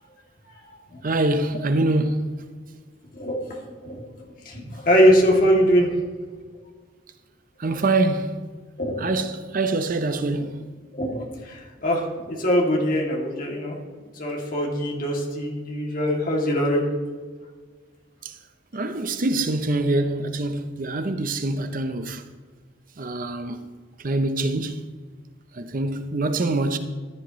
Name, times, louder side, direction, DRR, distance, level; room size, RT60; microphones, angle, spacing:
voice 1, 1.0-2.5 4.6-4.9 7.6-8.5 9.0-10.7 18.2-18.4 18.7-22.2 23.0-23.7 24.0-24.9 25.5-26.8, right 2 dB, 50° right, 0.7 m, -25 dB
voice 2, 3.1-4.0 4.5-5.9 8.8-8.9 10.9-13.7 14.2-16.9, equal, 50° left, 2.5 m, -22 dB
14.0 x 10.5 x 3.1 m
head